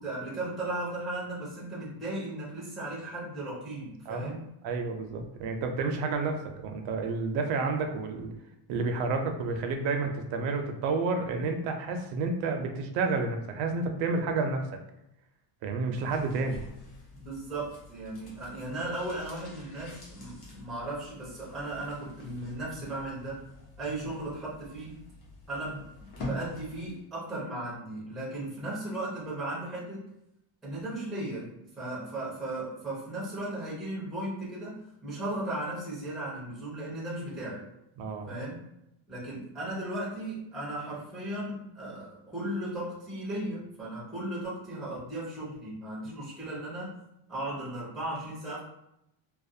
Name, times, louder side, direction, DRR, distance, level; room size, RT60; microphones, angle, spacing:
voice 1, 0.0-4.5 17.1-23.4 23.8-25.0 25.5-30.1 30.6-37.6 38.3-38.7 39.1-47.0 47.3-48.6, right 1 dB, ahead, -8 dB, 0.4 m, -36 dB
voice 2, 4.6-6.4 6.6-8.3 8.7-14.6 15.6-16.6 38.0-38.3, right 4 dB, 75° right, 5 dB, 0.5 m, -30 dB
sound 1, 15.9-27.1 27.4-27.5, left 1 dB, 55° left, 0.8 m, -46 dB
2.4 x 2.1 x 2.6 m, 0.84 s
cardioid pair, 175°, 46 cm